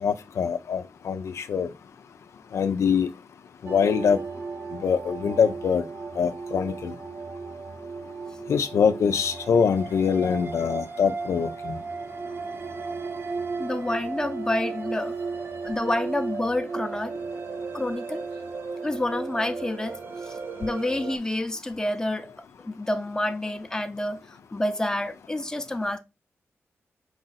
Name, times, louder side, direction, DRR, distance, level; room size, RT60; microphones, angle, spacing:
voice 1, 0.0-1.7 2.5-3.1 3.6-4.2 4.7-5.8 6.2-6.9 8.5-11.8, left 6 dB, 80° left, 0.5 m, -24 dB
sound 1, 3.7-21.2, right 4 dB, 45° right, 0.4 m, -35 dB
voice 2, 13.6-15.2 15.6-17.1 17.7-18.2 18.8-20.0 20.2-22.3 22.6-26.0, left 1 dB, 15° left, 0.6 m, -28 dB
4.7 x 2.6 x 4.0 m
wide cardioid pair, 90°, 5 cm